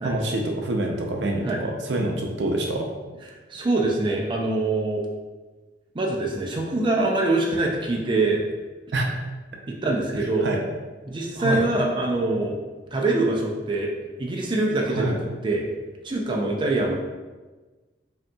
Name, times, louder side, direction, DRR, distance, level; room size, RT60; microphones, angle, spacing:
voice 1, 0.0-2.8 8.9-9.1 10.4-10.6 11.4-11.6 15.0-15.1, right 2 dB, 75° right, 1 dB, 0.6 m, -26 dB
voice 2, 3.5-5.0 5.9-8.4 9.7-10.5 11.1-12.6 12.9-13.9 14.2-15.6 16.0-16.9, right 2 dB, 30° right, -1 dB, 0.4 m, -24 dB
5.1 x 2.8 x 2.3 m, 1.3 s
head